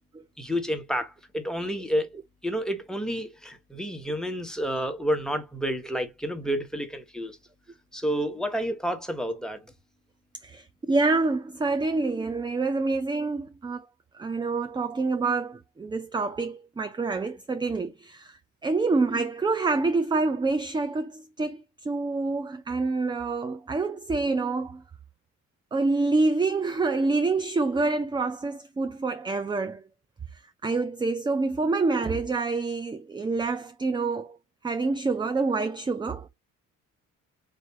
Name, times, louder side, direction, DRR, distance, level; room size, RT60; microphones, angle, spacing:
voice 1, 0.4-2.1 2.4-7.4 7.9-9.6, equal, ahead, 1.0 m, -30 dB
voice 2, 10.4-13.9 14.1-24.8 25.7-29.8 30.3-34.4 34.6-36.3, right 3 dB, 15° right, 0.4 m, -27 dB
3.2 x 2.5 x 4.4 m
cardioid pair, 80°, 33 cm